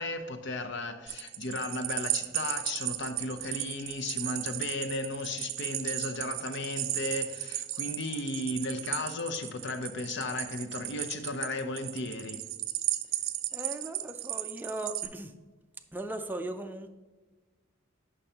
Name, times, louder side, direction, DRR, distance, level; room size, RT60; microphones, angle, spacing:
voice 1, 0.0-12.4, left 2 dB, 60° left, 7 dB, 0.7 m, -35 dB
sound 1, 1.1-15.1, right 14 dB, 85° right, 0.5 m, -35 dB
voice 2, 13.5-15.3 15.9-16.9, right 2 dB, 10° right, 5 dB, 0.4 m, -38 dB
10.0 x 5.4 x 2.9 m, 1.3 s
head